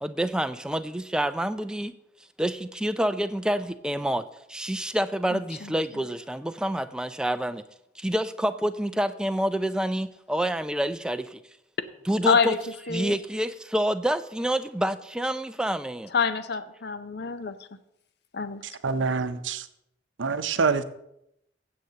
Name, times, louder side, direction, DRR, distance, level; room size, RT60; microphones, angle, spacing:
voice 1, 0.0-1.9 2.4-4.2 4.5-7.6 8.0-11.4 12.1-12.5 12.9-16.1, equal, 5° right, 10 dB, 0.3 m, -27 dB
voice 2, 5.3-5.7 12.3-12.6 12.9-13.1 16.1-17.6 18.3-18.6, left 5 dB, 60° left, 11 dB, 0.6 m, -26 dB
voice 3, 18.6-19.7 20.2-20.8, right 4 dB, 80° right, 11 dB, 0.6 m, -26 dB
15.5 x 7.7 x 2.8 m, 0.80 s
head